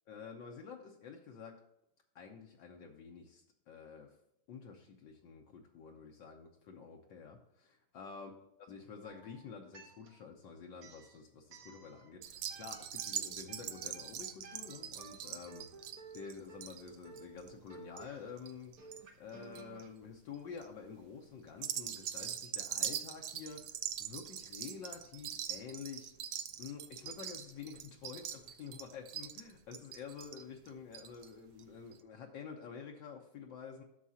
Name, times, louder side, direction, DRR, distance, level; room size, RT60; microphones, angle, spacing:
voice 1, 0.1-1.6 2.1-4.1 4.5-8.3 8.7-15.8 16.1-26.1 26.6-33.8, left 6 dB, 70° left, 1 dB, 1.5 m, -49 dB
sound 1, 9.0-10.3 10.8-12.2 12.5-19.9, right 5 dB, 50° right, 1.3 m, -55 dB
sound 2, 12.2-19.0 19.3-19.8 20.3-20.6 21.5-31.3 31.6-31.7 31.9-32.0, right 9 dB, 70° right, 1.1 m, -42 dB
11.0 x 6.8 x 2.8 m, 0.79 s
omnidirectional pair, 2.2 m